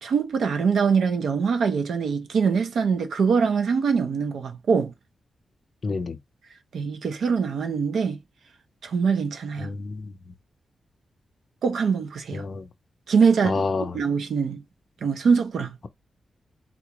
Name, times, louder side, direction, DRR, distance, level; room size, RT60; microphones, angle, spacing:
voice 1, 0.0-4.9 6.7-8.2 8.8-9.7 11.6-12.4 13.1-13.6 13.9-14.6 15.0-15.8, right 5 dB, 80° right, 0.6 m, -23 dB
voice 2, 5.8-6.2 9.6-10.1 12.3-12.6 13.4-13.9, left 4 dB, 40° left, 0.4 m, -28 dB
3.7 x 2.4 x 2.9 m
wide cardioid pair, 150°, 0 cm